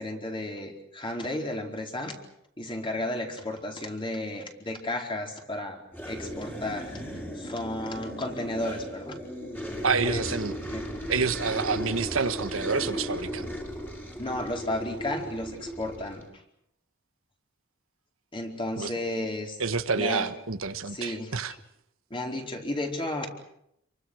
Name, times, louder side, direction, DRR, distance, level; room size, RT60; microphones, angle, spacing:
voice 1, 0.0-2.2 2.6-5.8 6.0-6.9 7.3-9.2 10.0-10.3 10.7-10.9 14.2-16.2 18.3-19.6 19.9-20.3 20.9-21.3 22.1-23.3, left 1 dB, 25° left, 4.5 m, -33 dB
sound 1, 5.9-16.3, equal, 10° left, 4.5 m, -36 dB
voice 2, 9.8-10.5 11.1-13.5 18.8-18.9 19.6-21.5, right 5 dB, 75° right, 1.5 m, -28 dB
28.5 x 24.0 x 6.5 m
head